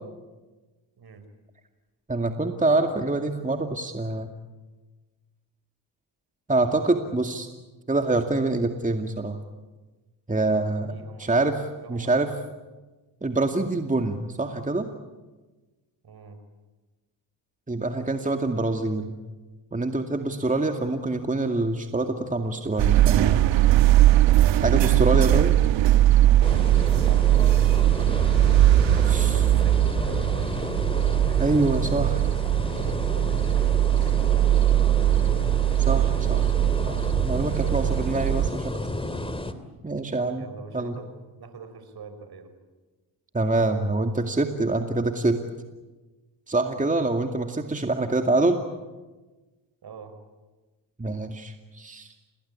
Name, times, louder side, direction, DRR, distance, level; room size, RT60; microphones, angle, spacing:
voice 1, 2.1-4.3 6.5-7.5 7.9-9.4 10.3-11.6 11.9-12.3 13.2-14.9 17.7-19.1 19.7-23.4 24.5-25.5 29.0-29.4 31.4-32.2 35.9-36.5 36.8-38.7 39.8-40.5 40.7-40.9 43.3-45.4 46.5-48.6 51.0-52.1, right 2 dB, 15° right, 5 dB, 2.3 m, -25 dB
voice 2, 10.9-11.4 11.8-12.4 16.0-16.4 26.9-27.8 28.8-34.6 40.3-41.1 41.4-42.5 46.7-47.0 49.8-50.2, right 5 dB, 50° right, 9 dB, 5.2 m, -45 dB
sound 1, 22.8-38.5, right 13 dB, 65° right, 1.3 m, -20 dB
sound 2, 26.4-39.5, left 1 dB, 10° left, 2.8 m, -32 dB
28.0 x 20.0 x 8.7 m, 1.2 s
hypercardioid pair, 55°, 48 cm